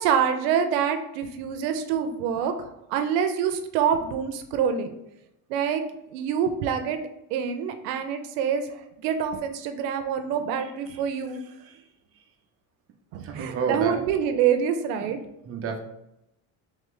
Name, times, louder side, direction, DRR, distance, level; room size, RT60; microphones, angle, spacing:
voice 1, 0.0-5.0 5.5-5.8 6.1-7.0 7.3-11.4 13.1-15.2, right 8 dB, 90° right, 7 dB, 0.6 m, -26 dB
voice 2, 13.2-14.0 15.0-15.2 15.5-15.8, right 5 dB, 30° right, 3 dB, 0.6 m, -29 dB
3.4 x 3.2 x 3.7 m, 0.84 s
supercardioid pair, 105°, 49 cm